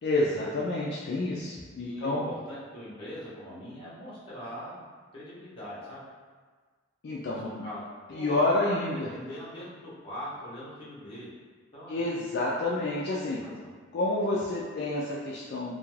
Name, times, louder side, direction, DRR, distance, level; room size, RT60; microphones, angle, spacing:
voice 1, 0.0-2.3 7.0-7.6 8.1-9.1 11.9-13.4 13.9-15.7, left 2 dB, 55° left, -5 dB, 0.3 m, -29 dB
voice 2, 1.8-4.8 5.1-6.0 7.4-7.8 8.1-11.3 11.7-12.0 13.3-13.7, equal, 25° left, -10 dB, 0.8 m, -42 dB
2.4 x 2.2 x 3.1 m, 1.5 s
head